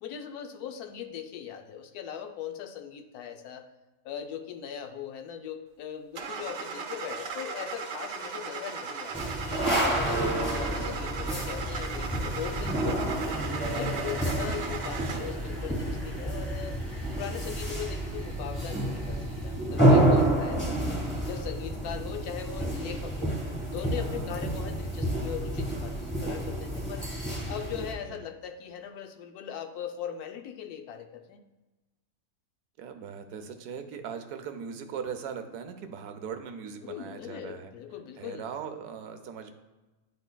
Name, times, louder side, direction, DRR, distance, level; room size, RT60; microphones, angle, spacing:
voice 1, 0.0-3.7 4.0-9.3 9.8-13.1 13.7-16.8 17.1-20.8 21.2-23.3 23.7-27.1 27.5-31.4 36.8-38.5, left 9 dB, 80° left, 6 dB, 1.1 m, -39 dB
Car / Engine starting, 6.2-15.4, right 5 dB, 65° right, 1.0 m, -37 dB
sound 1, 9.1-27.9, right 1 dB, 10° left, 1.1 m, -29 dB
sound 2, 13.0-20.2, equal, 40° left, 1.8 m, -50 dB
voice 2, 13.6-14.1 24.1-24.4 27.7-28.2 32.8-37.7 38.2-39.5, right 7 dB, 85° right, 7 dB, 1.2 m, -40 dB
10.5 x 4.1 x 2.2 m, 1.1 s
omnidirectional pair, 1.6 m